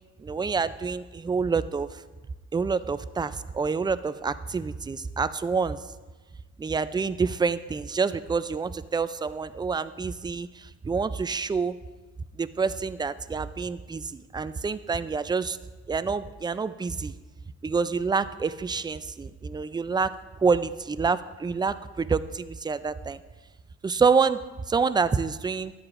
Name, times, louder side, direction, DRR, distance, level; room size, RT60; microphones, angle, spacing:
voice 1, 0.2-2.0 2.5-5.8 6.6-11.8 12.4-15.6 15.9-17.1 17.6-23.2 23.8-24.4 24.7-25.7, right 5 dB, 15° right, 14 dB, 0.3 m, -27 dB
13.5 x 9.5 x 2.5 m, 1.3 s
cardioid pair, 90°, 30 cm